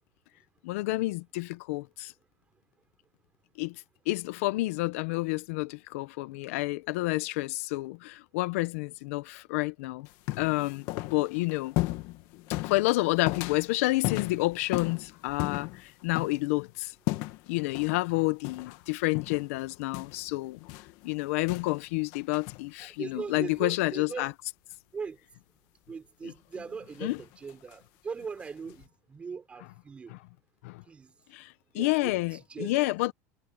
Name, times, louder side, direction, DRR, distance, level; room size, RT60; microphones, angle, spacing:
voice 1, 0.6-2.1 3.6-10.1 10.4-10.9 11.1-11.7 12.6-16.9 17.5-20.6 21.0-24.3 27.0-27.2 30.1-30.2 30.6-30.8 31.3-33.1, left 21 dB, 65° left, 0.8 m, -29 dB
sound 1, 10.1-16.5 17.1-17.5 17.8-18.1 18.4-18.8 19.1-21.9 22.1-22.7 23.4-23.5 26.5-27.7 28.4-28.8, left 19 dB, 50° left, 1.4 m, -35 dB
voice 2, 22.8-24.3 24.9-25.2 25.9-30.2 30.9-31.1 31.7-32.9, right 5 dB, 15° right, 5.8 m, -40 dB
supercardioid pair, 170°, 8 cm